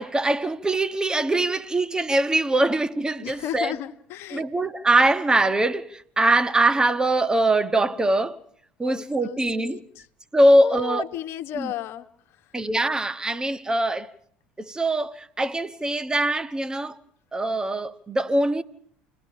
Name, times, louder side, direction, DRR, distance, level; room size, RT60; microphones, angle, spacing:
voice 1, 0.0-3.7 4.3-8.4 8.8-9.8 10.3-11.1 11.5-11.7 12.5-14.1 14.6-17.0 17.3-18.6, right 1 dB, 15° right, 1.3 m, -22 dB
voice 2, 3.2-4.7 8.8-10.1 10.5-12.0, left 12 dB, 55° left, 1.5 m, -34 dB
29.0 x 20.0 x 5.6 m
hypercardioid pair, 70°, 5 cm